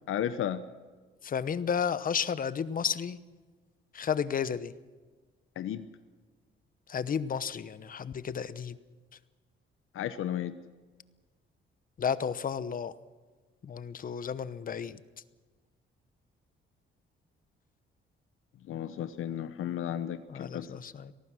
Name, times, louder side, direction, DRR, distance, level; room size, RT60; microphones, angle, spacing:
voice 1, 0.1-0.6 5.6-5.9 9.9-10.6 18.7-20.8, left 10 dB, 80° left, 11 dB, 1.0 m, -34 dB
voice 2, 1.2-3.2 3.9-4.7 6.9-8.8 12.0-12.9 13.6-15.0 20.3-21.1, left 7 dB, 40° left, 15 dB, 0.9 m, -32 dB
24.5 x 18.0 x 6.3 m, 1.4 s
cardioid pair, 135°, 21 cm